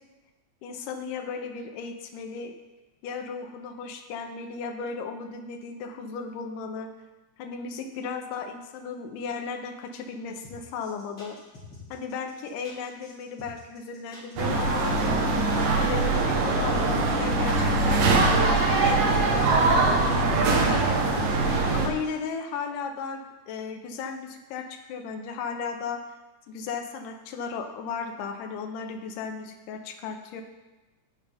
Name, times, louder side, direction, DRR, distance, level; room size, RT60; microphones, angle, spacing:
voice 1, 0.6-2.5 3.0-6.9 7.4-11.4 11.9-15.0 15.5-20.6 21.7-26.0 26.5-30.4, left 5 dB, 80° left, 5 dB, 2.4 m, -35 dB
sound 1, 10.4-22.1, left 3 dB, 40° left, 3.4 m, -47 dB
sound 2, 14.4-21.9, right 3 dB, 70° right, 2.3 m, -22 dB
15.0 x 5.5 x 3.4 m, 1.1 s
omnidirectional pair, 3.7 m